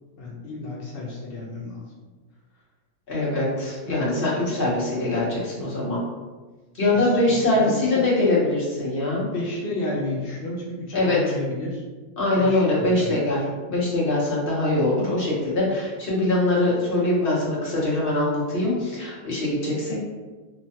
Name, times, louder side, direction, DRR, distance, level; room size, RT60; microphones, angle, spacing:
voice 1, 0.2-1.9 6.8-7.1 7.4-8.0 9.2-11.8 12.3-13.2, left 2 dB, 85° left, -3 dB, 0.4 m, -32 dB
voice 2, 3.1-6.0 6.8-9.2 10.9-11.3 12.2-13.4 13.7-19.9, left 2 dB, 45° left, -6 dB, 0.9 m, -23 dB
3.1 x 2.2 x 2.7 m, 1.3 s
omnidirectional pair, 1.7 m